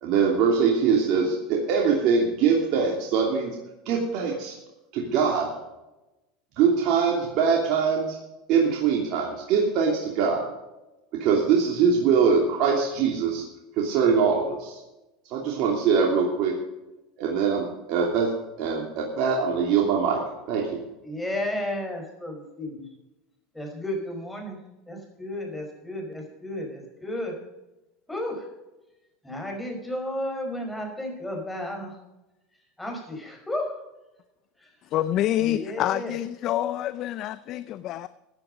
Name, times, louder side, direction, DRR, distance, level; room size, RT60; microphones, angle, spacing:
voice 1, 0.0-3.6 3.8-4.6 4.9-5.5 6.6-8.2 8.5-10.5 11.2-13.4 13.8-14.7 15.3-16.5 17.2-18.3 18.6-20.2 20.5-20.8, right 6 dB, 60° right, -1 dB, 2.9 m, -23 dB
voice 2, 21.0-22.8 23.5-24.6 24.9-27.3 28.1-28.5 29.2-31.9 32.8-33.6 35.4-36.1, left 1 dB, 5° left, 2 dB, 5.2 m, -33 dB
voice 3, 34.9-38.1, left 13 dB, 50° left, 15 dB, 0.6 m, -27 dB
15.5 x 9.8 x 5.2 m, 0.99 s
hypercardioid pair, 100°, 0 cm